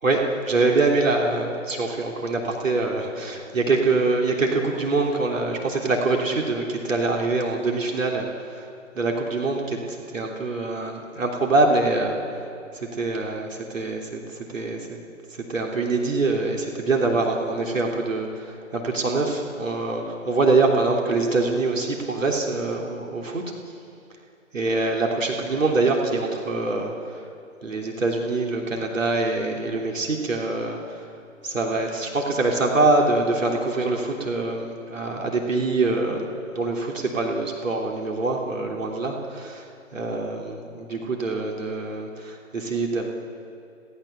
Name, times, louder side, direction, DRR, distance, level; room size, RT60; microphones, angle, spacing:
voice 1, 0.0-8.7 8.9-12.4 12.7-15.0 15.5-23.4 24.5-27.2 27.6-31.1 31.4-40.5 40.9-43.1, right 3 dB, 70° right, 0 dB, 3.4 m, -24 dB
28.5 x 18.0 x 7.0 m, 2.6 s
figure-of-eight pair, 140°, 41 cm